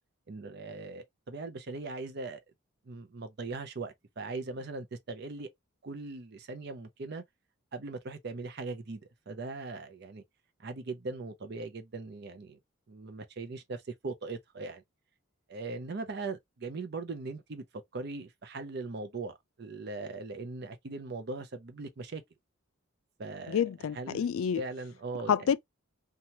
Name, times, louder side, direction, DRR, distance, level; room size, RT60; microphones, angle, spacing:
voice 1, 0.3-2.4 2.9-5.5 5.8-7.2 7.7-10.2 10.6-12.6 12.9-14.8 15.5-17.6 17.9-22.2 23.2-23.6 23.9-24.3 24.5-25.5, right 3 dB, 50° right, 0.5 m, -40 dB
voice 2, 23.5-24.6 25.3-25.6, left 7 dB, 80° left, 0.3 m, -28 dB
2.9 x 2.3 x 2.6 m
head